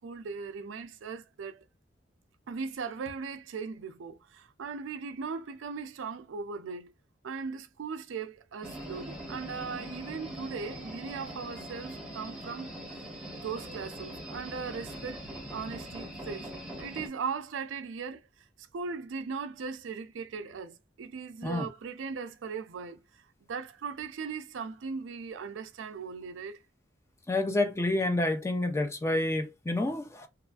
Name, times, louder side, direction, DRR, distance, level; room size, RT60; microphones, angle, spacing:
voice 1, 0.0-1.6 2.5-6.9 7.2-13.0 13.3-26.6, right 5 dB, 80° right, 0.4 m, -39 dB
sound 1, 8.6-17.1, right 1 dB, 5° right, 0.8 m, -42 dB
voice 2, 27.3-30.3, left 2 dB, 15° left, 0.3 m, -28 dB
2.9 x 2.4 x 2.3 m
head